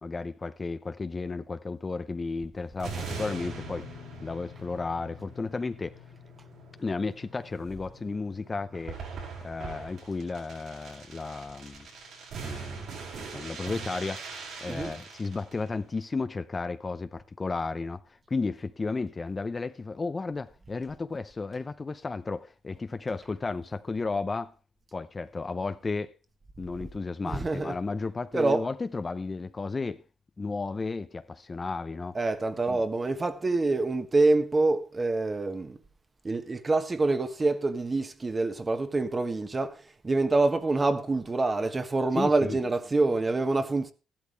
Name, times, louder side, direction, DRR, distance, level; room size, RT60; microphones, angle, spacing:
voice 1, 0.0-3.9 4.2-5.9 6.8-9.0 9.4-11.9 12.4-12.9 13.3-14.2 14.6-18.0 18.3-24.5 24.9-26.1 26.6-30.0 30.4-32.2 32.7-32.8 42.1-42.6, left 3 dB, 30° left, 0.6 m, -33 dB
sound 1, 2.8-15.7 16.0-16.1, right 5 dB, 75° right, 6.8 m, -42 dB
sound 2, 3.1-15.6, left 10 dB, 85° left, 2.1 m, -51 dB
voice 2, 27.3-27.8 28.3-28.6 32.1-35.8 36.2-39.8 40.0-43.9, right 3 dB, 25° right, 1.3 m, -26 dB
14.0 x 12.0 x 3.4 m
cardioid pair, 90°, 0 cm